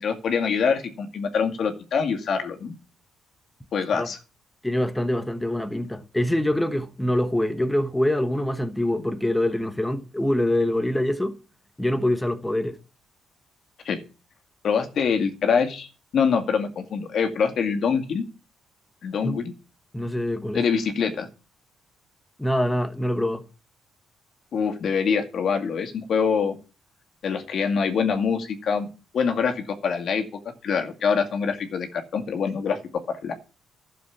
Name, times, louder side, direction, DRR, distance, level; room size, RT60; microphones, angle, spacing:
voice 1, 0.0-2.8 3.7-4.2 13.8-14.0 14.6-15.9 16.1-18.2 19.0-19.5 20.5-21.3 24.5-26.6 27.2-28.9 29.1-32.8 33.1-33.3, left 6 dB, 60° left, 2.2 m, -24 dB
voice 2, 4.6-11.4 11.8-12.8 19.2-19.4 19.9-20.6 22.4-23.4, left 1 dB, 10° left, 1.2 m, -24 dB
12.0 x 7.0 x 7.3 m
cardioid pair, 90°, 0 cm